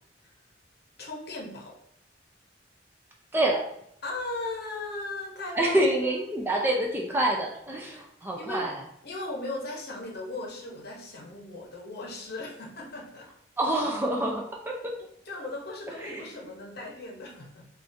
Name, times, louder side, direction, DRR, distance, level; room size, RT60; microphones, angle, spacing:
voice 1, 1.0-1.8 4.0-5.8 6.0-6.1 8.4-8.7 9.0-13.3 15.3-17.7, left 2 dB, 55° left, -1 dB, 0.8 m, -37 dB
voice 2, 3.3-3.7 5.6-8.8 13.6-14.9 16.0-16.5, right 1 dB, 10° right, -1 dB, 0.3 m, -27 dB
3.6 x 2.4 x 2.6 m, 0.73 s
head